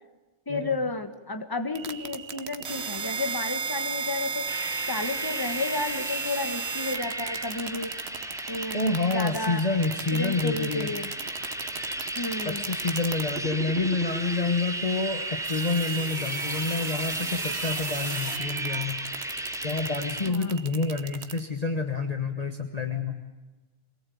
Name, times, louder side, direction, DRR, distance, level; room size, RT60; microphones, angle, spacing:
voice 1, 0.5-4.5 4.9-7.9 8.5-9.6 10.1-11.1 12.1-12.6 20.3-20.5, left 2 dB, 20° left, 7 dB, 1.6 m, -32 dB
sound 1, 1.8-21.4, right 5 dB, 65° right, 1.4 m, -35 dB
sound 2, 4.5-20.3, equal, 5° right, 0.9 m, -35 dB
voice 2, 8.7-10.9 12.4-19.0 19.6-23.2, left 3 dB, 35° left, 5 dB, 1.4 m, -28 dB
24.0 x 19.0 x 8.6 m, 1.2 s
omnidirectional pair, 1.2 m